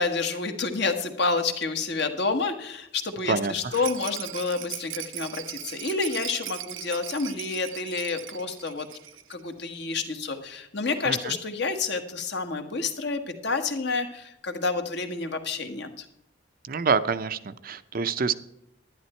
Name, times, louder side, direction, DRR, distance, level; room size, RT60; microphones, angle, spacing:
voice 1, 0.0-8.9 9.3-16.0, left 4 dB, 60° left, 6 dB, 1.5 m, -29 dB
voice 2, 3.3-3.8 11.1-11.4 16.7-18.3, right 5 dB, 50° right, 12 dB, 0.6 m, -27 dB
Rattle, 3.7-9.4 9.7-9.8 10.0-10.1, right 14 dB, 90° right, 0.6 m, -39 dB
11.5 x 11.0 x 4.4 m, 0.80 s
head